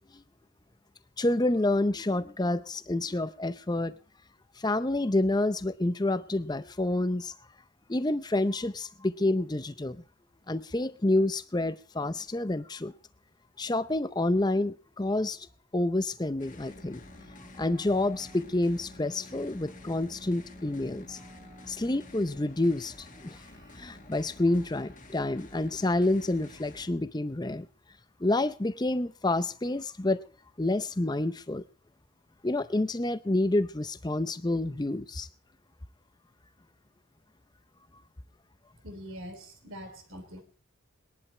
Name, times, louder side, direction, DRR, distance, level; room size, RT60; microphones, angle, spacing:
voice 1, 1.2-4.0 4.6-7.3 7.9-10.0 10.5-12.9 13.6-15.4 15.7-17.0 17.6-21.2 21.7-23.4 23.7-27.7 28.2-30.2 30.6-31.6 32.4-35.3, left 2 dB, 20° left, 14 dB, 0.6 m, -28 dB
sound 1, 16.4-26.9, left 2 dB, 35° left, 1.6 m, -51 dB
Keyboard (musical), 16.7-24.8, left 1 dB, 25° right, 2.5 m, -53 dB
voice 2, 38.8-40.4, equal, 80° right, 7 dB, 3.5 m, -43 dB
20.5 x 11.0 x 4.3 m, 0.39 s
head